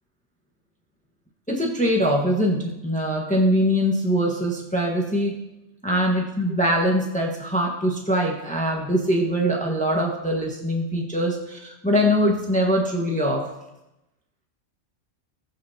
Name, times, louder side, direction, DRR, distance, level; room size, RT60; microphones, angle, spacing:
voice 1, 1.5-5.3 5.8-13.5, equal, 5° left, -1 dB, 1.4 m, -22 dB
20.5 x 6.9 x 2.9 m, 0.90 s
omnidirectional pair, 1.2 m